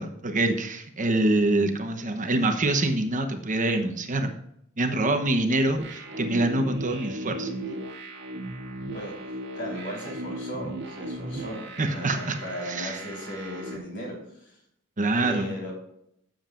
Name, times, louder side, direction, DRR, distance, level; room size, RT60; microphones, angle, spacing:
voice 1, 0.0-4.3 4.8-7.5 11.8-12.4 12.7-13.0 15.0-15.5, right 2 dB, 40° right, 6 dB, 1.0 m, -25 dB
sound 1, 5.8-13.8, right 1 dB, 55° right, 2.2 m, -36 dB
voice 2, 8.9-14.6 15.1-15.7, equal, 60° left, -1 dB, 4.2 m, -37 dB
16.0 x 7.5 x 2.5 m, 0.75 s
head